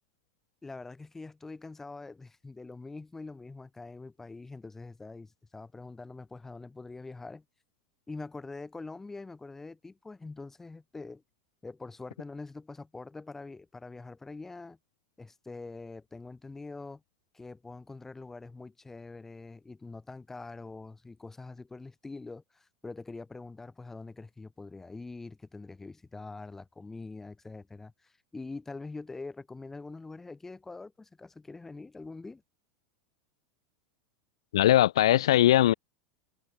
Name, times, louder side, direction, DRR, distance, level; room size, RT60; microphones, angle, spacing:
voice 1, 0.6-7.4 8.1-11.2 11.6-14.8 15.2-17.0 17.3-32.4, left 3 dB, 15° left, 2.2 m, -44 dB
voice 2, 34.5-35.7, left 13 dB, 80° left, 0.3 m, -20 dB
hypercardioid pair, 95°, 3 cm